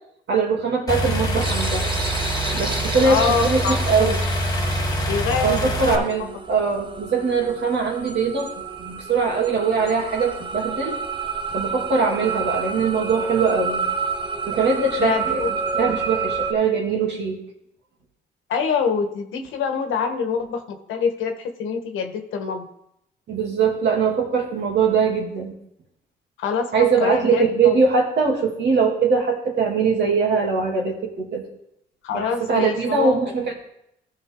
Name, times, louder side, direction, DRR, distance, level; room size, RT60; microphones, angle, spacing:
voice 1, 0.3-1.8 2.5-4.2 5.4-8.5 8.8-11.0 11.5-13.8 14.5-15.4 15.7-17.4 23.3-25.5 26.7-31.5 32.1-33.5, right 5 dB, 60° right, 1 dB, 2.3 m, -21 dB
sound 1, 0.9-6.0, equal, 20° left, 1.4 m, -24 dB
sound 2, 1.4-16.5, right 5 dB, 25° right, 0.9 m, -30 dB
voice 2, 3.0-4.2 5.1-6.0 15.0-15.5 18.5-20.6 20.9-22.6 26.4-27.8 32.0-33.1, left 6 dB, 85° left, 5 dB, 1.3 m, -25 dB
14.0 x 5.5 x 3.8 m, 0.78 s
cardioid pair, 90°, 20 cm